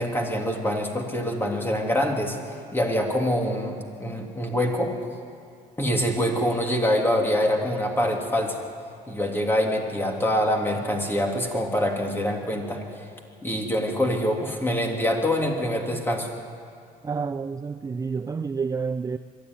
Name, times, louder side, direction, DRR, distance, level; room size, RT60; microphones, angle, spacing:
voice 1, 0.0-2.4 2.7-4.9 5.8-8.6 9.1-12.8 13.4-16.3, equal, 15° left, 3.2 m, -25 dB
voice 2, 17.0-19.2, right 5 dB, 20° right, 0.5 m, -29 dB
22.0 x 13.5 x 9.8 m
cardioid pair, 110°, 17 cm